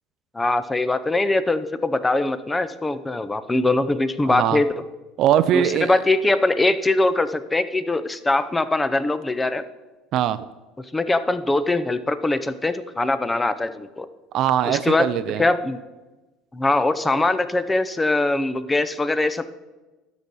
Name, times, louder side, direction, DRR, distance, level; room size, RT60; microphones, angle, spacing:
voice 1, 0.3-4.7 5.5-9.6 10.9-14.1 14.7-15.1 15.4-15.8 16.5-19.4, left 2 dB, 10° left, 12 dB, 0.5 m, -22 dB
voice 2, 4.2-4.6 5.2-6.0 10.1-10.5 14.3-15.4, right 10 dB, 50° right, 13 dB, 0.3 m, -21 dB
12.0 x 4.0 x 6.2 m, 1.2 s
cardioid pair, 135°, 0 cm